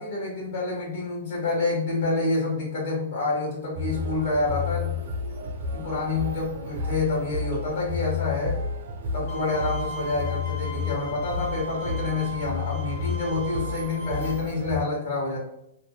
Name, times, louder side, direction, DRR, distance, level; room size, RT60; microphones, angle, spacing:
voice 1, 0.0-4.9 5.7-8.6 9.1-15.4, left 3 dB, 60° left, -7 dB, 1.1 m, -28 dB
sound 1, 3.7-14.8, left 4 dB, 65° right, 0.7 m, -32 dB
Bowed string instrument, 9.3-14.3, right 1 dB, 45° left, 0.7 m, -38 dB
2.6 x 2.1 x 2.2 m, 0.80 s
hypercardioid pair, 160°, 0 cm